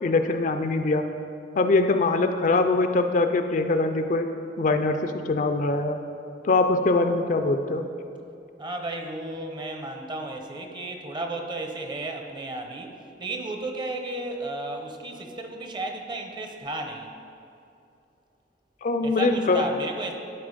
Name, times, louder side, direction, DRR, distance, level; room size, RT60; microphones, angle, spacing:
voice 1, 0.0-1.0 1.6-4.3 4.6-6.0 6.4-7.9 18.8-19.6, left 3 dB, 45° left, 7 dB, 0.4 m, -23 dB
voice 2, 8.6-12.9 13.2-17.1 19.0-20.1, right 2 dB, 25° right, 3 dB, 0.7 m, -33 dB
12.0 x 4.2 x 5.1 m, 2.6 s
head